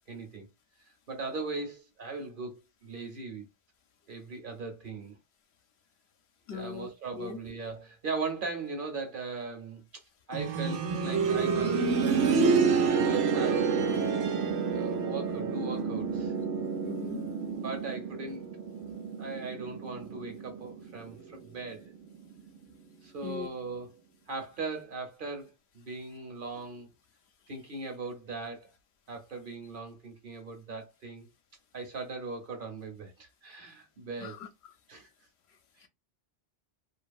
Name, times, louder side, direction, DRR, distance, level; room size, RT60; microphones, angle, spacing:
voice 1, 0.1-0.5 1.1-3.4 4.1-5.2 6.5-10.0 10.3-11.8 12.4-14.1 14.7-16.3 17.6-18.4 19.2-21.8 23.0-24.0 24.3-26.9 27.5-28.7 29.1-31.3 31.7-34.4 34.9-35.1, right 3 dB, 50° right, 1.0 m, -39 dB
voice 2, 6.5-7.4 16.8-17.3 23.2-23.5 34.2-34.5 35.8-35.9, left 6 dB, 70° left, 0.9 m, -40 dB
sound 1, 10.3-21.1 21.4-21.5 22.4-22.5, right 5 dB, 85° right, 1.0 m, -29 dB
2.7 x 2.6 x 2.3 m
omnidirectional pair, 1.2 m